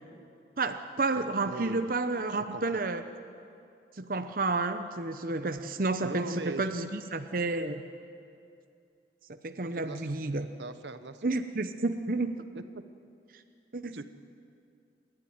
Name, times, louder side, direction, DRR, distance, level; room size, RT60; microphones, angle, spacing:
voice 1, 0.6-3.0 4.0-7.8 9.3-10.5 11.2-12.4 13.7-14.0, right 3 dB, 50° right, 8 dB, 0.8 m, -31 dB
voice 2, 1.2-1.8 2.3-2.8 6.0-6.8 9.7-10.2 10.6-11.3 13.9-14.0, right 2 dB, 85° right, 11 dB, 1.0 m, -40 dB
27.5 x 12.0 x 9.7 m, 2.5 s
head